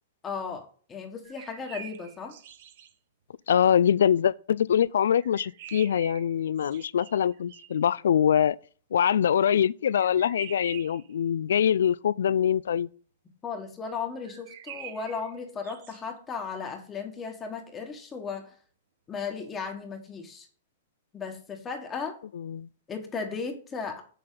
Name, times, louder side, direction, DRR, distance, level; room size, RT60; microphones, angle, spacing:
voice 1, 0.2-2.4 13.4-18.5 19.1-20.5 21.1-22.2 22.9-24.0, left 5 dB, 15° left, 1.3 m, -36 dB
sound 1, 1.2-2.9 5.2-7.9 9.9-11.1 14.2-16.0, right 9 dB, 55° right, 1.1 m, -46 dB
voice 2, 3.5-8.6 8.9-12.9 22.3-22.7, left 9 dB, 85° left, 0.3 m, -24 dB
7.6 x 6.5 x 3.8 m
hypercardioid pair, 160°, 0 cm